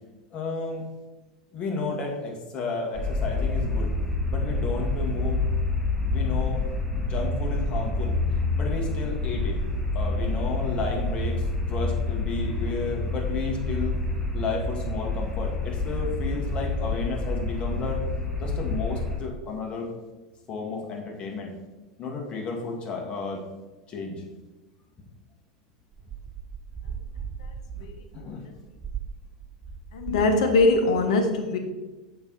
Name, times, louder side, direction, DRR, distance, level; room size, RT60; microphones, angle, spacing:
voice 1, 0.3-0.9 1.5-3.9 4.3-5.5 6.1-6.6 7.0-8.1 8.5-9.6 9.9-14.0 14.3-18.0 18.4-19.9 20.5-21.5 22.0-23.4 23.9-24.2 27.8-27.9 28.1-28.5, left 4 dB, 30° left, 0 dB, 2.0 m, -32 dB
sound 1, 2.9-19.2, left 2 dB, 5° left, 2.3 m, -28 dB
sound 2, 25.9-30.3 30.5-30.9, right 7 dB, 30° right, 0.7 m, -38 dB
voice 2, 29.9-31.6, left 2 dB, 70° left, 4 dB, 1.1 m, -21 dB
7.0 x 5.7 x 4.0 m, 1.1 s
hypercardioid pair, 85°, 4 cm